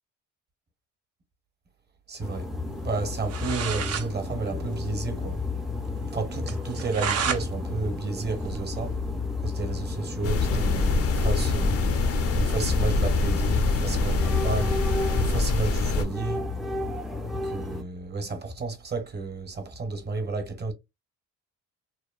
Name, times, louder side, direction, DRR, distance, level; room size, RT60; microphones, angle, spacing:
voice 1, 2.1-2.5 2.8-5.4 6.1-9.0 9.4-11.9 12.3-14.8 15.2-16.5 17.4-20.7, right 3 dB, 35° right, 0.8 m, -31 dB
sound 1, 2.2-17.8, left 3 dB, ahead, 0.4 m, -32 dB
Sword drawn and holstered again, 3.3-4.1 4.4-4.5 4.8-4.9 5.3-5.4 5.8-5.9 6.5-7.4 7.8-9.2, right 7 dB, 55° right, 0.5 m, -31 dB
sound 2, 10.2-16.0, left 3 dB, 50° left, 0.5 m, -24 dB
2.9 x 2.1 x 2.3 m
cardioid pair, 90°, 30 cm